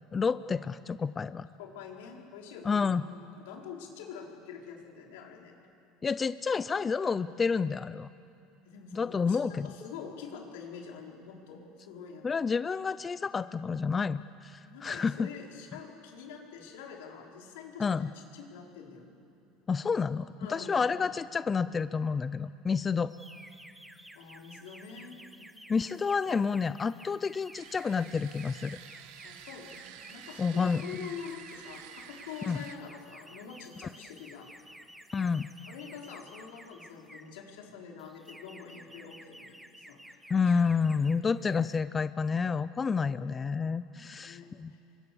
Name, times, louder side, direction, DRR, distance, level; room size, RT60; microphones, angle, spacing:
voice 1, 0.0-1.5 2.6-3.0 6.0-8.1 8.9-9.7 12.2-15.3 17.8-18.1 19.7-23.1 25.7-28.8 30.4-31.1 32.5-32.6 35.1-35.5 40.3-44.7, left 5 dB, 20° left, 14 dB, 0.5 m, -29 dB
voice 2, 1.6-5.6 8.6-12.5 14.7-19.1 20.4-20.9 24.1-25.2 29.2-34.5 35.1-35.3 35.7-40.7 43.9-44.8, left 6 dB, 85° left, 0 dB, 4.6 m, -46 dB
sound 1, 23.1-37.4 38.0-41.2 41.4-41.8, right 1 dB, 5° right, 1.2 m, -53 dB
sound 2, 27.5-32.8, right 10 dB, 75° right, 1.7 m, -49 dB
29.5 x 24.5 x 7.1 m, 2.7 s
supercardioid pair, 125°, 0 cm